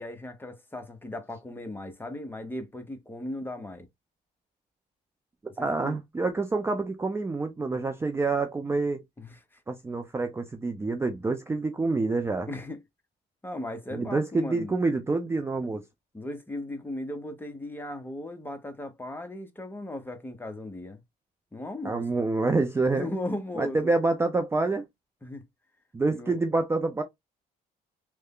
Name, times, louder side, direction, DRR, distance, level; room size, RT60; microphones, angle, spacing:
voice 1, 0.0-3.9 5.6-6.0 9.2-9.6 12.5-12.8 13.4-14.7 16.1-21.0 21.5-22.2 22.9-23.9 25.2-25.5 26.1-26.4, left 1 dB, 10° left, 0.8 m, -37 dB
voice 2, 5.6-9.0 9.7-12.5 13.9-15.8 21.8-23.1 23.6-24.8 25.9-27.0, right 3 dB, 15° right, 0.5 m, -27 dB
3.2 x 2.2 x 3.6 m
cardioid pair, 110°, 17 cm